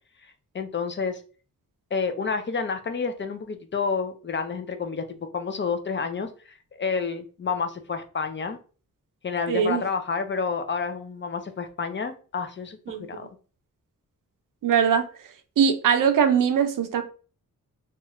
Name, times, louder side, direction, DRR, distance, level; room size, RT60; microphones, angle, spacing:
voice 1, 0.5-1.2 1.9-8.6 9.2-13.3, left 5 dB, 35° left, 0.4 m, -29 dB
voice 2, 9.5-9.8 12.9-13.1 14.6-15.0 15.6-17.0, right 7 dB, 80° right, 0.6 m, -21 dB
2.9 x 2.3 x 3.0 m
wide cardioid pair, 125°, 32 cm